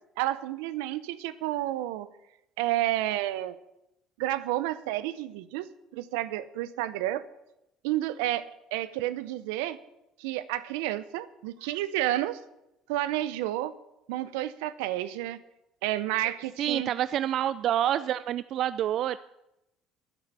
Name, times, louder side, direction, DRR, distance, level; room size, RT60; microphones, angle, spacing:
voice 1, 0.2-2.1 2.6-3.6 4.2-5.7 5.9-7.2 7.8-8.4 8.7-9.8 10.2-12.4 12.9-13.7 14.1-15.4 15.8-16.9, right 14 dB, 85° right, 15 dB, 0.7 m, -30 dB
voice 2, 16.6-19.2, right 11 dB, 60° right, 15 dB, 0.4 m, -27 dB
10.0 x 9.1 x 8.1 m, 0.88 s
supercardioid pair, 90°, 0 cm